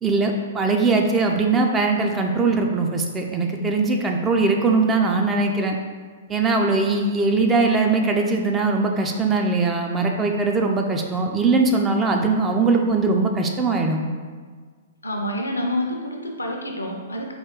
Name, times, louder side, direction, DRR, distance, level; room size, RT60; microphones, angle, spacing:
voice 1, 0.0-5.8 6.3-14.0, right 3 dB, 15° right, 2 dB, 0.4 m, -21 dB
voice 2, 15.0-17.3, left 1 dB, 85° left, 2 dB, 0.6 m, -27 dB
4.5 x 2.3 x 3.6 m, 1.5 s
figure-of-eight pair, 110°, 0 cm